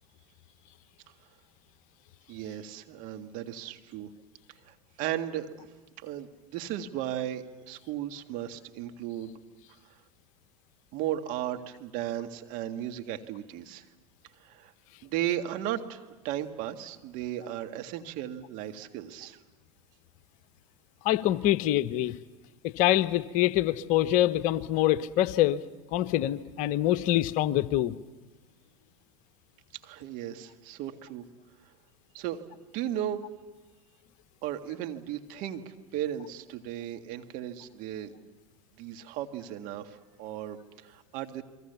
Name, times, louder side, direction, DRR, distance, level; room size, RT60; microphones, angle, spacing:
voice 1, 2.3-4.1 4.6-5.7 6.0-9.3 10.9-13.9 14.4-14.7 15.0-19.4 29.8-31.2 32.1-32.4 32.7-33.2 34.4-38.4 38.8-41.4, right 11 dB, 50° right, 6 dB, 1.9 m, -35 dB
voice 2, 21.0-22.2 22.6-25.6 25.9-27.9, left 14 dB, 50° left, 14 dB, 0.9 m, -25 dB
30.0 x 23.0 x 7.0 m, 1.2 s
hypercardioid pair, 90°, 17 cm